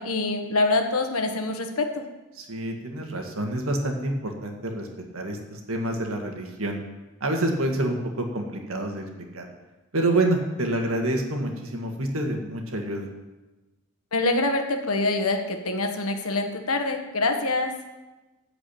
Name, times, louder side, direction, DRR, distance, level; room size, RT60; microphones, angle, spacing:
voice 1, 0.0-2.1 14.1-17.7, left 2 dB, 70° left, 5 dB, 1.4 m, -25 dB
voice 2, 2.4-4.9 5.1-6.8 7.2-9.5 9.9-13.1, right 1 dB, 65° right, 3 dB, 1.9 m, -27 dB
14.0 x 5.1 x 8.7 m, 1.1 s
head